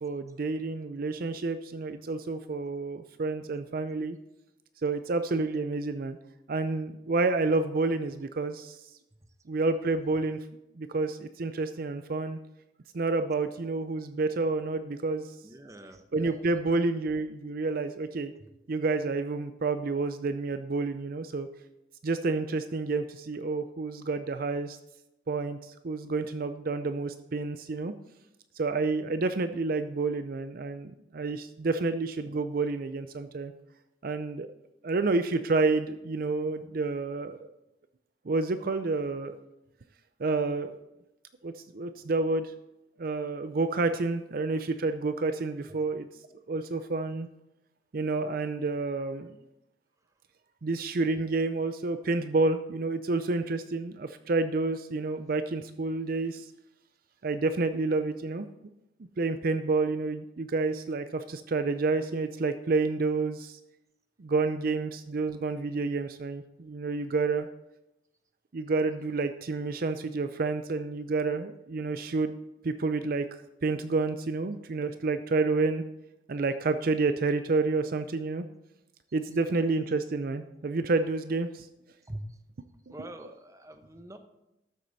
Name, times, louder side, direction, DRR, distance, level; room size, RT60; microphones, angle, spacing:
voice 1, 0.0-4.2 4.8-6.2 6.5-8.8 9.5-10.4 10.8-12.4 12.9-15.3 16.1-18.3 18.7-21.5 22.0-24.8 25.3-27.9 28.5-33.5 34.0-34.5 34.8-37.5 38.3-39.4 40.2-40.8 41.4-42.5 43.0-46.1 46.5-47.3 47.9-49.3 50.6-56.5 57.2-58.5 59.2-63.6 64.2-67.5 68.5-72.3 72.6-73.3 73.6-75.8 76.3-78.4 79.1-81.7, right 3 dB, 55° right, 10 dB, 0.5 m, -29 dB
voice 2, 15.4-16.0 18.4-18.5 45.7-45.8 82.1-82.4 82.9-84.2, right 1 dB, 20° right, 7 dB, 0.9 m, -43 dB
13.0 x 7.6 x 4.0 m, 0.90 s
head